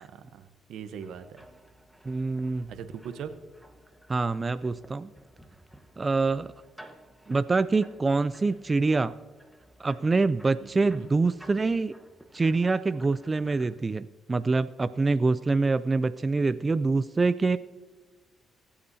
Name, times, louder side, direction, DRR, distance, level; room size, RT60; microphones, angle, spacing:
voice 1, 0.0-1.4 2.7-3.3 10.6-11.1, right 7 dB, 80° right, 10 dB, 0.8 m, -41 dB
sound 1, 1.0-13.8, equal, ahead, 1.1 m, -55 dB
voice 2, 2.1-2.7 4.1-5.1 6.0-6.5 7.3-9.1 9.8-11.9 12.3-17.6, right 3 dB, 25° right, 14 dB, 0.3 m, -25 dB
24.5 x 8.5 x 2.7 m, 1.4 s
cardioid pair, 90°, 0 cm